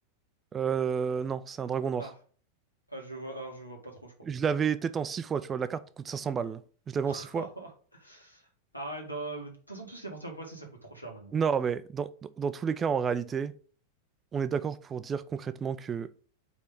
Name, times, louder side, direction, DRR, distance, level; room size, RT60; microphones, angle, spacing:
voice 1, 0.5-2.1 4.2-7.5 11.3-13.5 14.3-16.1, right 6 dB, 20° right, 0.4 m, -30 dB
voice 2, 2.9-4.1 7.1-8.5 8.7-11.4, right 2 dB, 90° left, 1.9 m, -41 dB
4.8 x 4.5 x 5.2 m
figure-of-eight pair, 90°, 0 cm